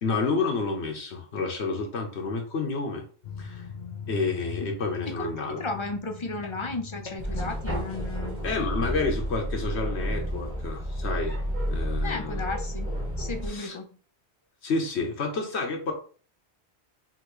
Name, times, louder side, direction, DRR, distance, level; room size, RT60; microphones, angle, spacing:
voice 1, 0.0-3.0 3.4-3.6 4.1-5.6 7.3-7.4 8.4-11.4 11.7-12.5 13.5-13.8 14.6-15.9, left 3 dB, 80° left, 2 dB, 1.3 m, -29 dB
sound 1, 3.2-13.2, left 6 dB, 60° left, 0.8 m, -44 dB
voice 2, 5.2-8.4 12.0-13.9, left 3 dB, 35° left, 5 dB, 0.6 m, -34 dB
sound 2, 7.2-13.5, equal, 15° right, 1.3 m, -31 dB
5.7 x 2.9 x 3.1 m, 0.41 s
omnidirectional pair, 1.1 m